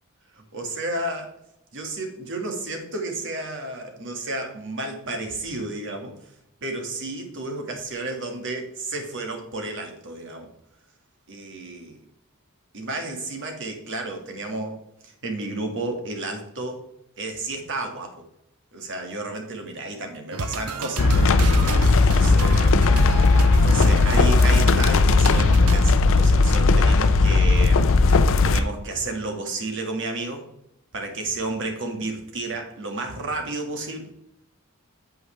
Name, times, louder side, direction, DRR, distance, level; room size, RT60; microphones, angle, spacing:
voice 1, 0.5-1.3 1.7-6.1 6.6-10.5 11.3-11.8 12.7-14.8 15.0-16.8 17.2-18.2 18.7-22.8 23.6-30.4 30.9-34.1, right 2 dB, 60° right, 3 dB, 1.8 m, -32 dB
sound 1, 20.3-25.9, right 3 dB, 85° right, 0.8 m, -31 dB
sound 2, 21.0-28.6, left 3 dB, 65° left, 0.5 m, -17 dB
8.7 x 7.8 x 3.3 m, 0.77 s
head